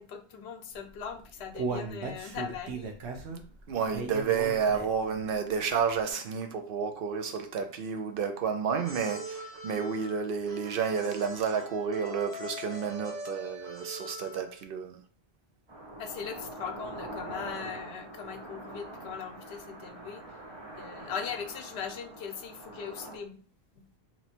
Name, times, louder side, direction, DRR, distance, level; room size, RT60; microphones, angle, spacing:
voice 1, 0.0-3.0 16.0-20.2 20.8-23.4, left 7 dB, 80° left, 0.9 m, -39 dB
Human voice, 0.9-5.1 5.5-5.6 6.1-6.2, right 4 dB, 85° right, 1.0 m, -36 dB
voice 2, 3.7-15.0, right 6 dB, 65° right, 0.7 m, -30 dB
sound 1, 8.7-14.6, equal, 5° left, 1.3 m, -43 dB
sound 2, 15.7-23.2, right 1 dB, 30° right, 0.7 m, -44 dB
3.0 x 2.9 x 4.2 m
omnidirectional pair, 1.1 m